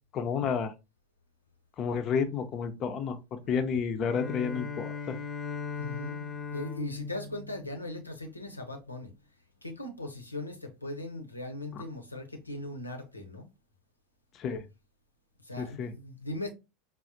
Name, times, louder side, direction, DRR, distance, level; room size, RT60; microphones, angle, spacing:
voice 1, 0.1-0.7 1.8-3.2 3.5-5.2 11.7-11.8 14.3-14.6 15.6-15.9, left 6 dB, 35° left, 0.5 m, -31 dB
Bowed string instrument, 4.0-8.4, left 5 dB, 10° left, 1.0 m, -39 dB
voice 2, 5.8-9.1 9.6-13.5 15.5-16.5, left 1 dB, 85° left, 0.6 m, -39 dB
4.8 x 2.0 x 2.5 m
figure-of-eight pair, 80°, 0 cm